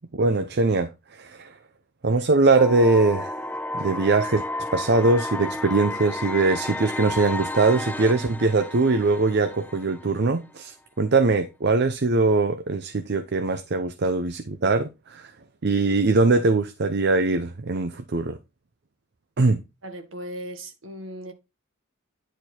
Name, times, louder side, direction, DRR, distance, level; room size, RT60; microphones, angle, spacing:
voice 1, 0.1-1.5 2.0-3.4 3.7-4.4 4.7-15.3 15.6-18.4 19.4-19.6, right 3 dB, 55° right, 0.7 m, -22 dB
sound 1, 2.6-10.5, left 2 dB, 10° left, 0.5 m, -32 dB
voice 2, 19.8-21.3, equal, 70° right, 1.8 m, -37 dB
10.0 x 4.6 x 4.3 m
head